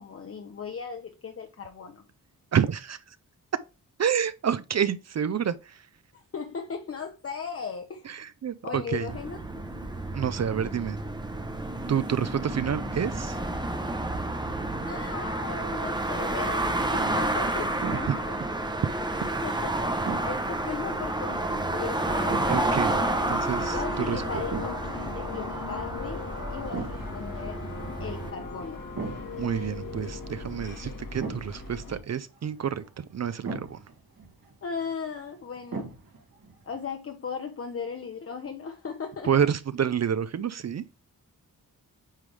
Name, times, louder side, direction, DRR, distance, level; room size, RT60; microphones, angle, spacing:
voice 1, 0.0-2.0 6.1-8.1 8.6-9.6 14.9-18.7 19.2-22.3 23.7-27.6 28.0-28.8 34.6-35.9 36.7-39.3, left 5 dB, 40° left, 0.7 m, -37 dB
voice 2, 2.5-3.0 4.0-5.8 8.1-9.1 10.1-11.0 11.9-13.4 18.1-18.2 22.5-23.0 23.3-24.4 29.3-33.8 39.2-40.8, right 8 dB, 50° right, 0.4 m, -28 dB
sound 1, 9.1-28.3, right 2 dB, 10° right, 0.7 m, -30 dB
sound 2, 19.8-36.9, right 4 dB, 80° right, 2.1 m, -42 dB
sound 3, 22.1-32.0, left 3 dB, 65° left, 1.6 m, -37 dB
9.0 x 3.3 x 3.2 m
wide cardioid pair, 175°, 35 cm